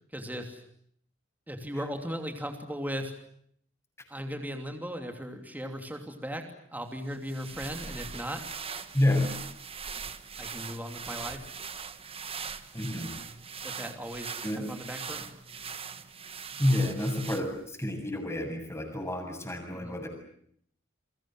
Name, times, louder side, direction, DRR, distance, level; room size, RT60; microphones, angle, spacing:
voice 1, 0.1-0.6 1.5-3.1 4.1-6.4 6.7-8.4 10.4-11.4 13.6-15.3 19.7-20.0, equal, 10° right, 4 dB, 3.0 m, -37 dB
sound 1, 7.1-17.7, right 6 dB, 30° right, 1.5 m, -41 dB
voice 2, 8.9-9.3 12.7-13.1 14.4-14.7 16.6-20.1, left 1 dB, 15° left, 4 dB, 7.5 m, -29 dB
29.0 x 23.5 x 7.8 m, 0.66 s
head